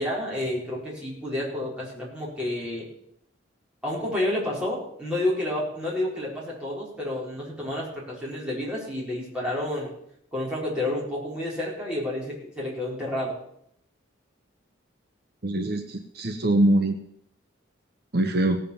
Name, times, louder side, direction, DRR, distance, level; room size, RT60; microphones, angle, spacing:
voice 1, 0.0-2.8 3.8-9.9 10.3-13.3, left 1 dB, 5° right, -6 dB, 4.6 m, -30 dB
voice 2, 15.4-17.0 18.1-18.6, right 1 dB, 50° right, 6 dB, 0.9 m, -23 dB
16.5 x 7.5 x 7.1 m, 0.72 s
head